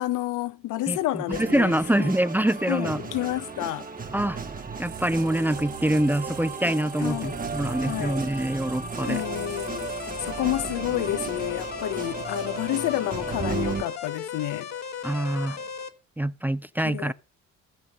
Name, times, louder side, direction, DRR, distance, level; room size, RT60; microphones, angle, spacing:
voice 1, 0.0-2.1 2.7-3.9 7.0-7.4 7.8-8.3 9.1-9.9 10.2-14.7 16.8-17.1, left 15 dB, 85° left, 0.6 m, -29 dB
voice 2, 0.9-3.0 4.1-4.4 4.8-9.2 15.0-15.6 16.2-17.1, right 1 dB, 5° right, 0.5 m, -25 dB
sound 1, 1.3-13.8, right 4 dB, 30° right, 1.5 m, -35 dB
sound 2, 4.8-10.9, right 11 dB, 75° right, 1.3 m, -46 dB
sound 3, 9.0-15.9, left 7 dB, 60° left, 1.5 m, -36 dB
15.0 x 5.3 x 6.4 m
cardioid pair, 90°, 30 cm